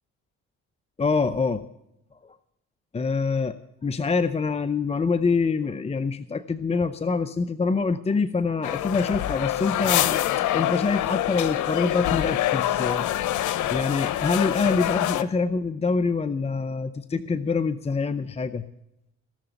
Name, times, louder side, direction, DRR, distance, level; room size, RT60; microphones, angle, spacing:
voice 1, 1.0-1.7 2.9-3.5 3.8-10.2 10.5-13.2 13.7-18.7, left 4 dB, 20° left, 11 dB, 0.6 m, -25 dB
sound 1, 8.6-15.2, left 13 dB, 80° left, 0.9 m, -25 dB
18.0 x 6.8 x 8.9 m, 0.84 s
cardioid pair, 90°, 30 cm